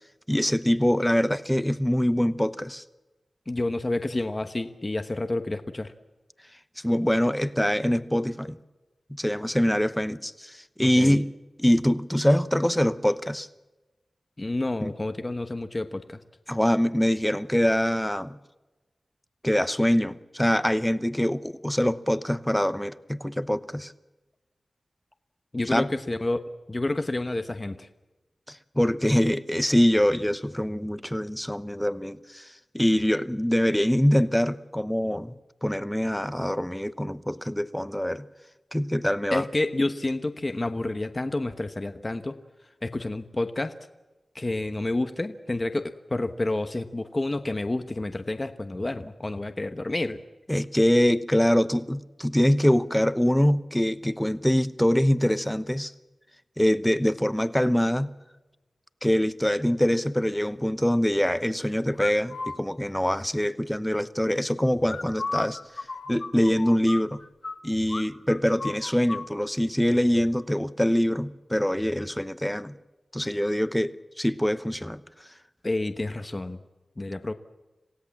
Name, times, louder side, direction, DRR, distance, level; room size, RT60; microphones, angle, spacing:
voice 1, 0.3-2.8 6.8-8.6 9.2-11.3 11.6-13.5 14.8-14.9 16.5-18.4 19.4-23.9 25.7-25.9 28.5-35.3 35.6-38.2 38.7-39.4 50.5-55.9 56.6-58.1 59.0-65.6 66.1-67.2 67.6-72.8 73.1-75.0, equal, 5° left, 0.9 m, -24 dB
voice 2, 3.5-5.9 10.8-11.2 14.4-16.2 25.5-27.9 39.3-42.4 42.8-43.8 44.3-50.2 75.6-76.6 77.0-77.3, left 2 dB, 30° left, 1.1 m, -29 dB
sound 1, 62.0-62.6 64.8-67.6 67.9-68.0 68.3-69.3, left 3 dB, 55° left, 1.7 m, -34 dB
27.0 x 16.5 x 7.3 m
wide cardioid pair, 80°, 0 cm